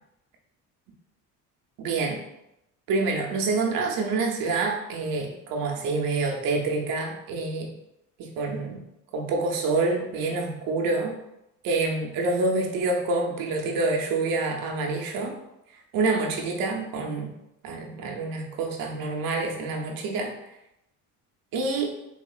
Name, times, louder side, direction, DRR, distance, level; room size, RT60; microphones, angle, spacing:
voice 1, 1.8-2.2 2.9-7.7 8.2-8.8 9.1-11.1 11.6-15.4 15.9-17.3 17.6-20.3 21.5-21.9, right 3 dB, 80° right, 1 dB, 0.7 m, -27 dB
3.6 x 2.9 x 2.3 m, 0.86 s
cardioid pair, 120°, 34 cm